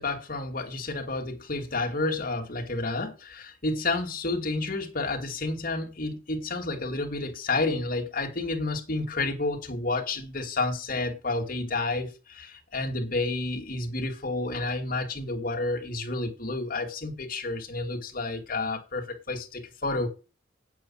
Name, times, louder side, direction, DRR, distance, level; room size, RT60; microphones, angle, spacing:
voice 1, 0.0-20.1, left 2 dB, 50° left, 2.4 m, -30 dB
9.1 x 7.6 x 5.9 m
head